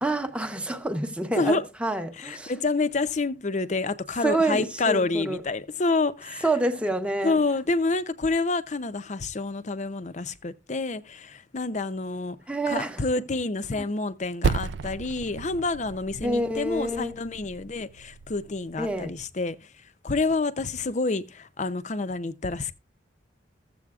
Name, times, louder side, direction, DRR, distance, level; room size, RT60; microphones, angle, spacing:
voice 1, 0.0-2.5 4.2-5.4 6.4-7.4 12.5-13.0 16.2-17.1 18.8-19.1, right 2 dB, 5° right, 0.8 m, -27 dB
voice 2, 2.2-6.5 7.2-12.4 12.7-19.7 20.0-22.8, left 3 dB, 40° left, 0.6 m, -28 dB
Percussion, 14.4-19.3, right 5 dB, 75° right, 0.4 m, -33 dB
15.0 x 7.7 x 2.4 m
head